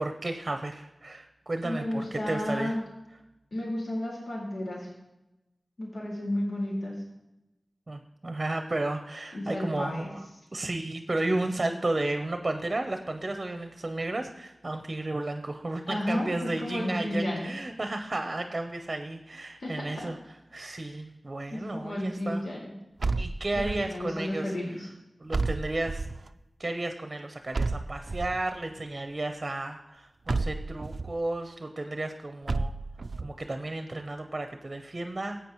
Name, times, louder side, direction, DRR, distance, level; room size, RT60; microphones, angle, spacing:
voice 1, 0.0-2.8 7.9-10.3 10.5-20.1 20.5-22.4 23.2-24.5 25.2-26.0 26.6-32.7 33.2-35.4, right 2 dB, 40° right, 6 dB, 0.7 m, -33 dB
voice 2, 1.6-2.8 3.5-4.9 5.8-7.0 9.3-10.1 15.9-17.5 19.6-20.1 20.7-21.0 21.5-22.7 23.6-24.9, left 1 dB, 80° left, -4 dB, 2.3 m, -32 dB
sound 1, 23.0-24.0 25.3-26.3 27.5-28.5 30.3-31.1 32.5-33.3, right 3 dB, 65° right, 0.4 m, -31 dB
15.0 x 8.3 x 3.1 m, 0.95 s
wide cardioid pair, 75°, 0 cm